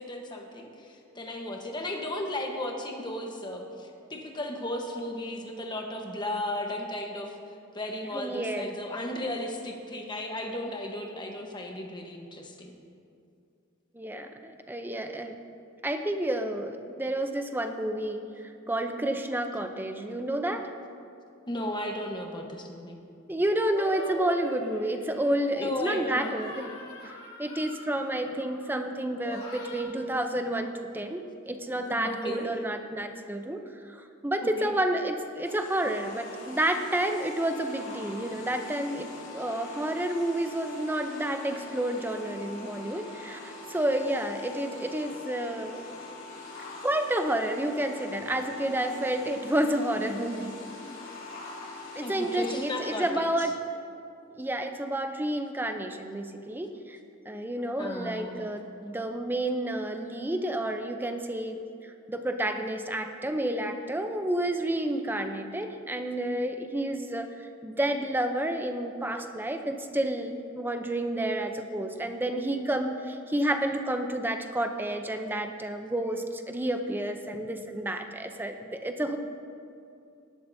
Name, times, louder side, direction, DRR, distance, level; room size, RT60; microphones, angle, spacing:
voice 1, 0.0-7.3 7.7-12.8 21.5-23.0 25.5-26.4 32.0-32.5 34.4-34.7 52.0-53.3 57.8-58.5, left 1 dB, 20° left, 2 dB, 1.2 m, -35 dB
voice 2, 8.1-8.7 13.9-15.3 15.8-20.7 23.3-26.7 27.4-33.6 33.9-45.8 46.8-50.7 52.0-53.5 54.3-57.0 57.2-79.2, right 1 dB, 10° right, 5 dB, 0.6 m, -30 dB
sound 1, 23.7-25.6 26.1-28.8 29.2-29.8, left 2 dB, 50° left, 2.4 m, -42 dB
sound 2, 35.4-53.1, left 3 dB, 75° left, 3.1 m, -43 dB
17.5 x 11.5 x 2.7 m, 2.5 s
head